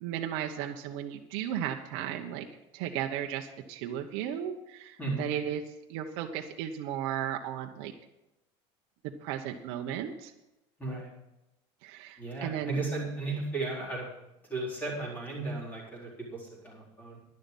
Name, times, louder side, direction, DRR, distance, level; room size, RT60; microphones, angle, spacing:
voice 1, 0.0-2.5 2.7-5.6 5.9-7.9 9.2-10.3 11.8-12.8, right 10 dB, 60° right, 3 dB, 1.0 m, -35 dB
voice 2, 5.0-5.3 10.8-11.1 12.2-14.1 14.5-17.2, right 3 dB, 15° left, -4 dB, 4.2 m, -35 dB
11.5 x 11.0 x 5.4 m, 0.94 s
cardioid pair, 175°, 13 cm